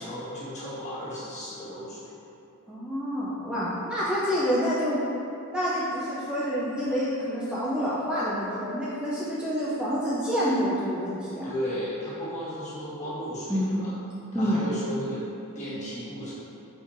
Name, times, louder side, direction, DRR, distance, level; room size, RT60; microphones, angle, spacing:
voice 1, 0.0-2.1 11.4-13.9 14.3-15.2 15.5-16.3, equal, 35° left, -10 dB, 1.3 m, -34 dB
voice 2, 2.7-5.0 5.5-11.5 13.5-13.8 14.3-14.6, equal, 5° right, -9 dB, 0.4 m, -27 dB
4.3 x 4.3 x 2.5 m, 2.8 s
head